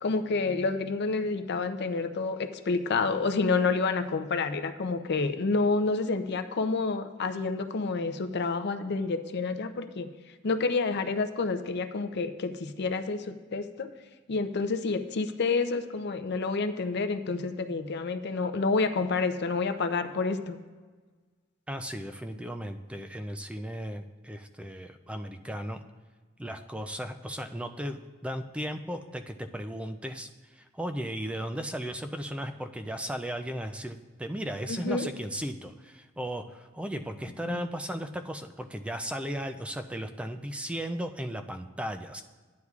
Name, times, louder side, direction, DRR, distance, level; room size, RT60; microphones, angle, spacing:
voice 1, 0.0-10.1 10.4-13.9 14.3-20.6 34.7-35.1 37.4-37.6, left 4 dB, 55° left, 8 dB, 0.5 m, -29 dB
voice 2, 21.7-25.8 26.4-42.2, equal, 5° right, 7 dB, 0.3 m, -36 dB
13.0 x 9.5 x 2.4 m, 1.4 s
head